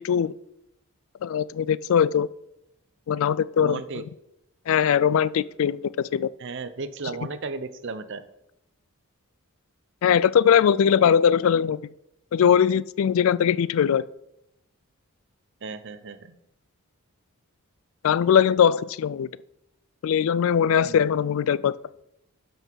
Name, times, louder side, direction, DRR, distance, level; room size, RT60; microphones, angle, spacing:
voice 1, 1.2-2.3 3.1-3.8 4.7-6.3 10.0-11.8 12.3-14.0 18.0-19.3 20.0-21.8, left 8 dB, 65° left, 18 dB, 0.3 m, -21 dB
voice 2, 3.6-4.0 6.4-8.2 15.6-16.3 20.9-21.1, right 4 dB, 55° right, 12 dB, 0.7 m, -34 dB
11.5 x 5.5 x 4.6 m, 0.83 s
head